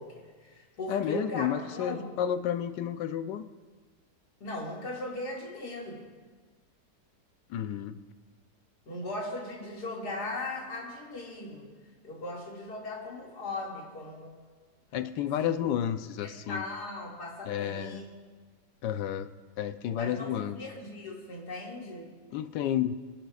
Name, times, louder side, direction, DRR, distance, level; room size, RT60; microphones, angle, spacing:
voice 1, 0.0-1.5 1.7-2.1 4.4-6.0 8.9-11.7 12.0-14.4 15.4-15.5 16.2-18.1 20.0-22.1, left 2 dB, 65° left, -3 dB, 2.8 m, -38 dB
voice 2, 0.9-3.4 7.5-8.0 14.9-16.7 17.4-18.0 18.8-19.3 19.6-20.6 22.3-23.0, left 10 dB, 80° left, 11 dB, 1.3 m, -31 dB
26.5 x 12.0 x 2.4 m, 1.5 s
omnidirectional pair, 1.9 m